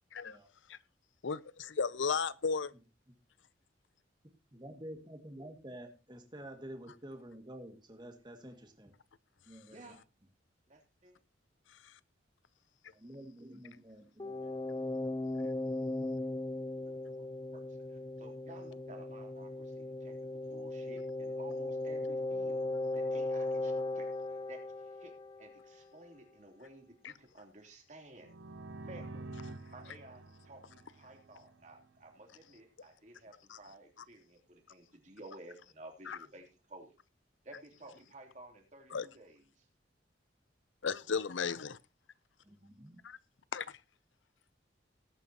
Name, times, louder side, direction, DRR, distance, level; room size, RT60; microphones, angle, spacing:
voice 1, 1.2-2.7 36.1-36.2 38.9-39.1 40.8-41.8 43.0-43.2 43.5-43.7, left 5 dB, 85° left, 0.6 m, -34 dB
voice 2, 4.5-8.9 9.5-9.8 12.9-14.7 42.4-43.0, right 1 dB, 25° right, 2.1 m, -49 dB
voice 3, 9.7-10.0 10.7-11.2 16.2-16.3 16.8-17.3 17.5-17.6 17.9-20.1 20.5-22.6 22.9-25.1 25.4-28.3 28.8-36.9 37.4-39.7, right 2 dB, 40° right, 3.2 m, -54 dB
sound 1, 14.2-25.8, left 2 dB, 20° left, 0.7 m, -37 dB
sound 2, 28.2-31.9, right 2 dB, 80° right, 1.0 m, -48 dB
19.5 x 9.2 x 2.9 m
head